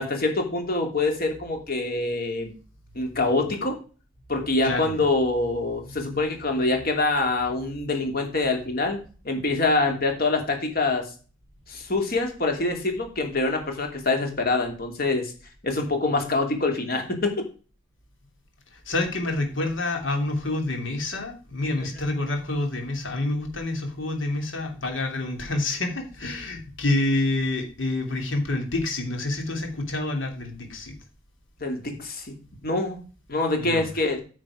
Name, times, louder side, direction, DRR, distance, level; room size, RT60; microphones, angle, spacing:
voice 1, 0.0-2.5 3.0-3.8 4.3-9.0 9.2-11.1 11.7-15.3 15.6-17.4 21.8-21.9 31.6-32.3 32.6-33.0 33.3-34.2, left 2 dB, 50° left, 4 dB, 2.7 m, -25 dB
voice 2, 4.6-4.9 18.7-30.9 33.6-33.9, left 2 dB, 80° left, 4 dB, 2.9 m, -28 dB
9.5 x 6.3 x 4.9 m, 0.37 s
head